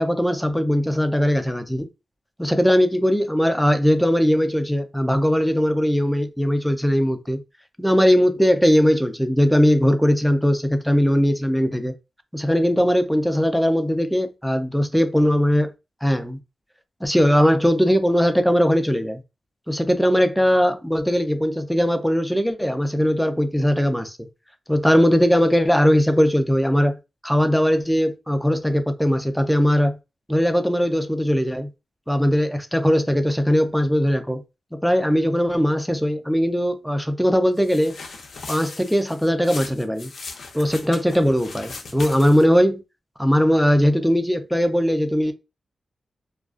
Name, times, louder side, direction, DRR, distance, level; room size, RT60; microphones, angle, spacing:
voice 1, 0.0-1.9 2.4-7.4 7.8-11.9 12.3-15.7 16.0-16.4 17.0-19.2 19.7-24.3 24.7-27.0 27.2-30.0 30.3-31.7 32.1-34.4 34.7-38.0 38.5-40.1 40.5-42.8 43.2-45.3, equal, ahead, 0.4 m, -19 dB
sound 1, 37.6-42.6, left 4 dB, 75° left, 0.5 m, -38 dB
2.4 x 2.2 x 2.3 m
cardioid pair, 80°, 0 cm